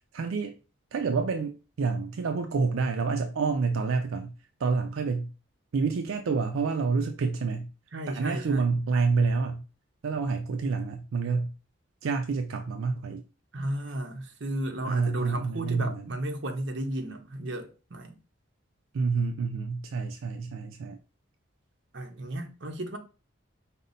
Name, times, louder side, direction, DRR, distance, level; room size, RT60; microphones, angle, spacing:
voice 1, 0.1-0.6 0.9-4.3 4.6-5.3 5.7-7.7 8.1-9.6 10.0-11.5 12.0-13.2 14.8-16.1 18.9-21.0, right 4 dB, 85° right, 0.4 m, -28 dB
voice 2, 7.9-8.6 13.5-18.2 21.9-23.0, right 1 dB, 60° right, 0.8 m, -34 dB
5.3 x 2.0 x 3.9 m
head